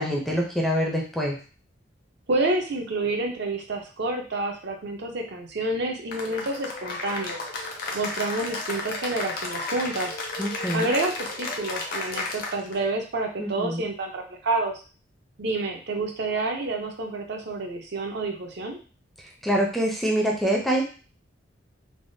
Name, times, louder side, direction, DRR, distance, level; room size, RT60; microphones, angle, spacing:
voice 1, 0.0-1.4 10.4-10.9 13.4-13.9 19.4-20.8, equal, ahead, -2 dB, 0.4 m, -25 dB
voice 2, 2.3-7.4 7.9-10.1 10.7-14.7 15.4-18.8, right 2 dB, 60° right, 3 dB, 0.5 m, -28 dB
Cheering / Applause, 6.1-12.8, left 3 dB, 50° left, 0.6 m, -33 dB
3.4 x 2.0 x 2.6 m, 0.37 s
head